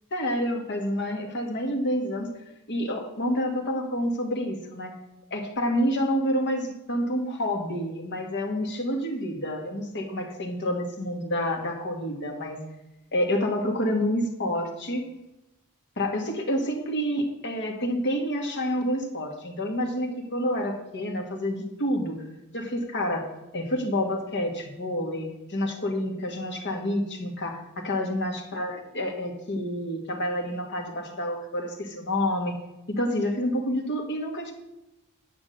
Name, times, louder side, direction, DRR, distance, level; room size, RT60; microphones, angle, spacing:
voice 1, 0.1-2.3 2.7-4.9 5.3-12.6 13.1-15.0 16.0-22.2 22.5-23.3 23.5-32.5 32.9-34.5, equal, 55° left, 3 dB, 2.0 m, -28 dB
10.0 x 6.1 x 6.6 m, 0.93 s
head